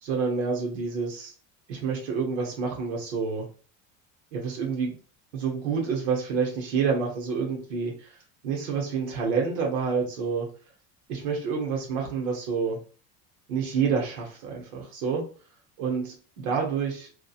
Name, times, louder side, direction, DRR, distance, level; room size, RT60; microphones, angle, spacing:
voice 1, 0.0-1.3 1.7-3.5 4.3-4.9 5.3-10.5 11.1-12.8 13.5-15.2 15.8-17.1, right 5 dB, 85° right, 0 dB, 0.9 m, -28 dB
2.8 x 2.3 x 2.3 m, 0.39 s
supercardioid pair, 110°, 36 cm